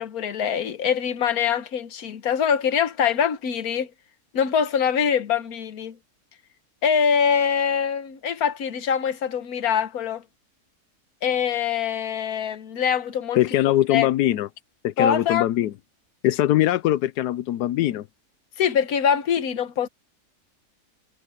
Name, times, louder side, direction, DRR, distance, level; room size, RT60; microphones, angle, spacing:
voice 1, 0.0-3.9 4.3-6.0 6.8-10.2 11.2-13.4 13.9-14.1 15.0-15.5 18.6-19.9, left 7 dB, 70° left, 1.6 m, -23 dB
voice 2, 13.4-14.5 14.8-15.7 16.2-18.0, left 13 dB, 90° left, 1.2 m, -22 dB
omnidirectional pair, 1.7 m